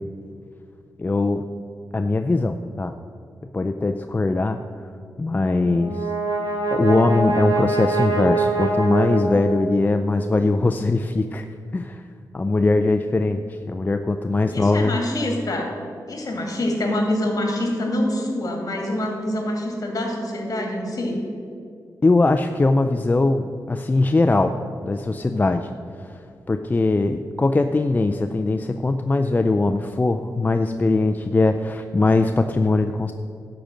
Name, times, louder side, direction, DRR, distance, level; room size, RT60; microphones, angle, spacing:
voice 1, 1.0-1.5 1.9-3.0 3.5-4.6 5.2-6.1 6.7-11.4 11.7-12.0 12.3-15.0 22.0-24.5 24.8-25.7 26.0-33.1, left 2 dB, 25° left, 7 dB, 0.4 m, -21 dB
Brass instrument, 5.6-10.0, right 2 dB, 85° right, 2.5 m, -24 dB
voice 2, 14.5-15.8 16.1-21.2, left 1 dB, 55° left, 1 dB, 2.5 m, -25 dB
11.5 x 5.1 x 7.4 m, 2.3 s
wide cardioid pair, 90°, 7 cm